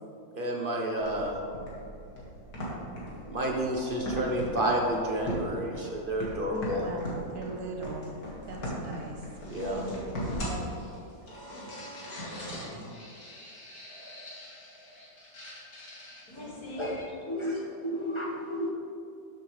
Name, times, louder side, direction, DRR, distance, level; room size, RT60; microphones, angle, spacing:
voice 1, 0.3-1.4 3.3-6.8 9.5-9.8, right 1 dB, 40° right, -1 dB, 1.2 m, -30 dB
Caçadors de sons - Merci, 1.0-17.0, equal, 70° left, 2.5 m, -39 dB
voice 2, 6.5-8.1 8.5-9.2 12.3-12.9, right 3 dB, 75° right, 1 dB, 1.7 m, -39 dB
voice 3, 16.6-18.7, left 1 dB, 20° left, -4 dB, 1.6 m, -33 dB
12.5 x 7.9 x 3.3 m, 2.5 s
omnidirectional pair, 1.6 m